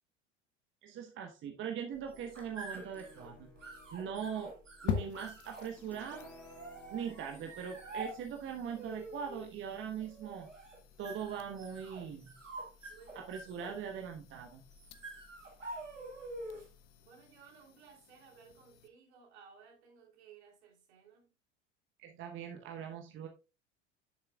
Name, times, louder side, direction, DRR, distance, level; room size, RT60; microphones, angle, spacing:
voice 1, 0.8-3.5 3.9-4.5 4.8-6.3 6.9-10.5 11.0-12.4 13.1-14.6 22.0-23.3, right 8 dB, 35° right, 1.2 m, -41 dB
sound 1, 1.9-16.8, right 2 dB, 85° right, 1.9 m, -48 dB
sound 2, 2.1-9.8, equal, 5° left, 1.5 m, -59 dB
sound 3, 4.9-18.9, left 8 dB, 40° left, 1.1 m, -47 dB
voice 2, 12.9-13.6 17.0-21.3, right 6 dB, 60° right, 3.3 m, -59 dB
10.0 x 7.3 x 2.4 m
figure-of-eight pair, 75°, 37 cm